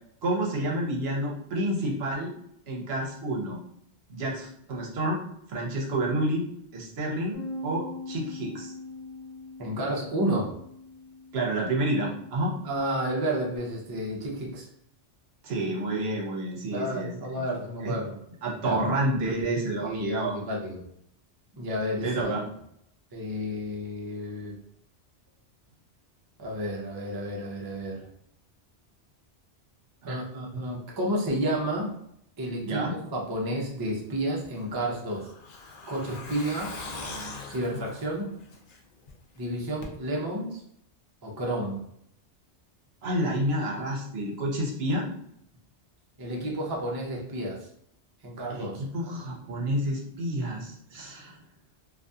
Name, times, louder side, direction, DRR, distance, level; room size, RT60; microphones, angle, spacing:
voice 1, 0.2-2.3 2.7-3.6 4.1-5.2 5.5-6.4 6.7-8.7 11.3-12.5 15.4-17.4 17.8-17.9 18.4-20.4 22.0-22.4 30.0-30.2 30.5-30.6 32.6-32.9 43.0-45.1 48.5-51.4, right 1 dB, 70° right, -2 dB, 0.9 m, -29 dB
Bass guitar, 7.3-13.6, left 2 dB, 75° left, 1.0 m, -42 dB
voice 2, 9.6-10.6 12.6-14.7 16.7-18.1 18.6-18.8 19.8-20.8 21.5-22.3 23.1-24.5 26.4-28.1 30.0-31.9 32.4-32.8 33.1-35.3 35.9-36.8 37.5-38.3 39.4-40.6 41.2-41.8 46.2-47.7 48.2-48.8, right 1 dB, 30° right, -2 dB, 0.4 m, -31 dB
Truck, 34.4-39.1 39.4-39.5 39.8-39.9, left 3 dB, 60° left, 0.4 m, -41 dB
2.6 x 2.4 x 2.3 m, 0.71 s
omnidirectional pair, 1.2 m